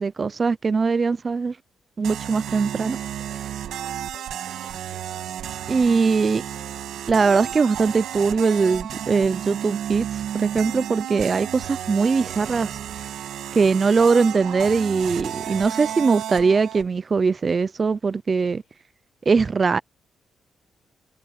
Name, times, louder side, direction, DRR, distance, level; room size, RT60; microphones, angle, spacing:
voice 1, 0.0-1.5 2.0-3.0 5.7-6.4 7.1-10.1 10.3-12.7 13.5-18.6 19.3-19.8, right 4 dB, 35° right, 0.4 m, -21 dB
sound 1, 2.0-16.9, right 10 dB, 85° right, 1.5 m, -32 dB
voice 2, 2.9-5.3 6.5-7.0, left 6 dB, 45° left, 7.0 m, -55 dB
cardioid pair, 120°, 0 cm